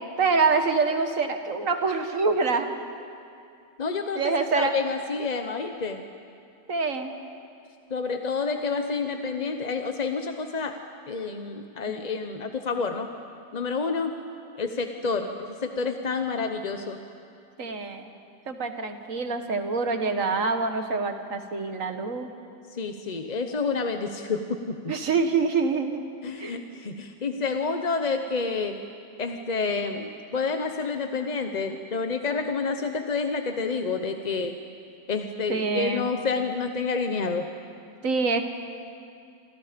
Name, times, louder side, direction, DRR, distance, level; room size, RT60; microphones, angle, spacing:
voice 1, 0.2-2.7 4.2-4.7 6.7-7.1 11.9-12.0 17.6-18.1 18.5-22.3 24.9-26.0 26.4-26.6 35.5-36.1 38.0-38.4, right 4 dB, 55° right, 6 dB, 1.7 m, -25 dB
voice 2, 3.8-6.0 7.9-10.8 11.1-13.1 13.5-14.2 14.6-15.3 15.6-17.0 22.7-24.9 26.2-28.8 29.2-34.6 35.1-37.5, left 4 dB, 35° left, 6 dB, 0.7 m, -29 dB
28.0 x 26.0 x 5.2 m, 2.5 s
omnidirectional pair, 1.8 m